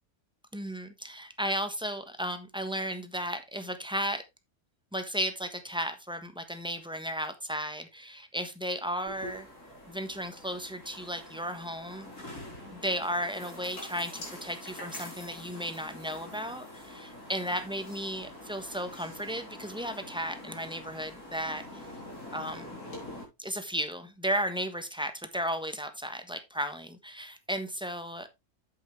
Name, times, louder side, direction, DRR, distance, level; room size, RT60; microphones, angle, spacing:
voice 1, 0.5-4.2 4.9-9.5 9.9-12.3 12.7-21.8 22.3-22.8 23.4-28.3, equal, 5° right, 1.0 m, -34 dB
sound 1, 9.1-23.2, left 1 dB, 85° left, 4.1 m, -45 dB
8.2 x 8.0 x 3.3 m
omnidirectional pair, 1.6 m